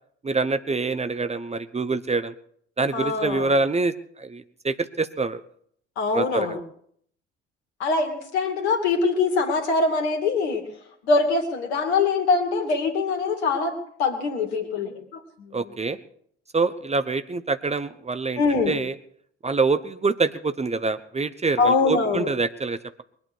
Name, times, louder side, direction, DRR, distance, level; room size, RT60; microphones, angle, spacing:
voice 1, 0.2-2.3 2.8-3.9 4.2-5.4 6.1-6.6 15.5-16.0 16.5-18.9 19.4-23.0, right 3 dB, 20° right, 12 dB, 1.0 m, -25 dB
voice 2, 2.9-3.5 6.0-6.6 7.8-10.6 11.0-15.5 18.4-18.7 21.6-22.3, left 4 dB, 70° left, 6 dB, 2.6 m, -23 dB
22.5 x 8.6 x 6.3 m, 0.64 s
figure-of-eight pair, 50°, 34 cm